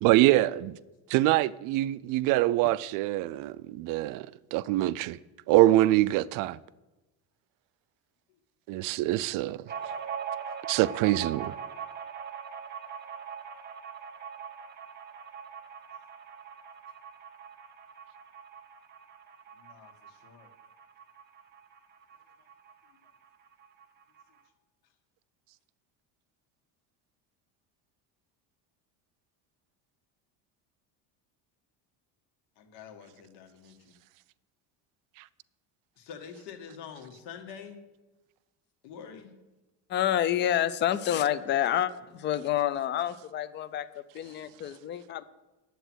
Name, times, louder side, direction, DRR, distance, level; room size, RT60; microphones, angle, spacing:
voice 1, 0.0-0.8 1.1-5.2 5.5-6.6 8.7-9.6 10.7-11.5, right 16 dB, 55° right, 0.4 m, -24 dB
sound 1, 9.7-22.8 23.1-23.2 23.5-24.2, right 7 dB, 25° right, 0.8 m, -41 dB
voice 2, 19.3-20.5 22.9-23.0 32.6-33.9 36.0-37.8 38.8-39.3, left 7 dB, 75° left, 1.9 m, -47 dB
voice 3, 39.9-45.2, left 11 dB, 30° left, 0.4 m, -28 dB
10.0 x 7.9 x 6.2 m
cardioid pair, 160°, 39 cm